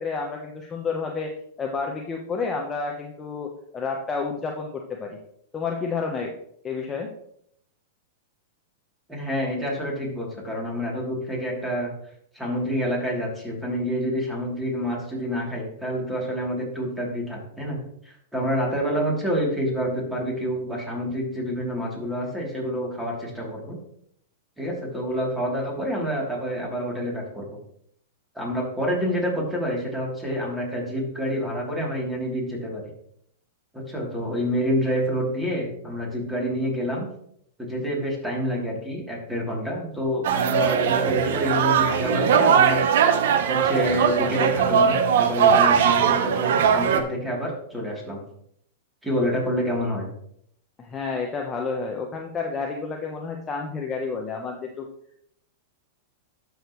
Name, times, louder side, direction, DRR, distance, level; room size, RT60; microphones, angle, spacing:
voice 1, 0.0-1.3 1.6-5.2 5.5-6.3 6.6-7.1 50.8-54.9, left 4 dB, 20° left, 1 dB, 1.0 m, -30 dB
voice 2, 9.1-11.9 12.3-17.8 18.0-23.8 24.6-27.5 28.3-32.8 33.7-37.1 37.6-42.8 43.5-48.2 49.0-50.1, equal, 5° right, -3 dB, 3.2 m, -28 dB
sound 1, 40.2-47.0, right 7 dB, 70° right, 0.9 m, -20 dB
12.0 x 6.5 x 3.2 m, 0.69 s
hypercardioid pair, 130°, 0 cm